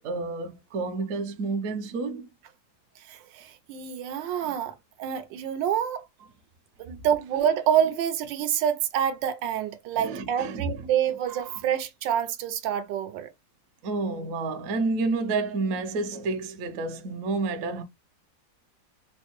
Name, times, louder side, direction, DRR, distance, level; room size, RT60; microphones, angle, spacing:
voice 1, 0.0-2.3 10.0-10.9 13.8-17.8, right 3 dB, 65° right, 0.9 m, -30 dB
voice 2, 3.1-6.0 6.8-13.3, right 9 dB, 80° right, 1.3 m, -27 dB
4.3 x 2.1 x 2.9 m
omnidirectional pair, 2.0 m